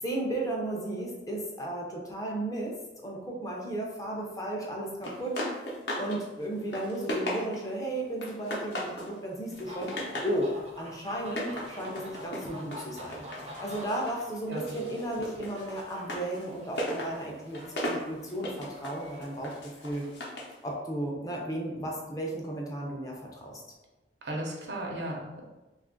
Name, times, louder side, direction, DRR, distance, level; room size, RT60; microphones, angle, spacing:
voice 1, 0.0-5.4 6.0-10.0 10.2-13.3 13.6-19.6 19.8-20.0 20.6-23.6, right 1 dB, 20° left, -2 dB, 0.5 m, -34 dB
sound 1, 5.0-6.2 6.5-7.8 8.2-9.1 9.5-10.4 11.2-14.2 14.5-20.6, equal, 70° left, 0.7 m, -37 dB
sound 2, 9.5-20.2, equal, 35° right, 0.5 m, -47 dB
voice 2, 14.5-14.8 24.2-25.4, right 1 dB, 70° right, -1 dB, 0.7 m, -35 dB
2.8 x 2.4 x 3.7 m, 1.1 s
head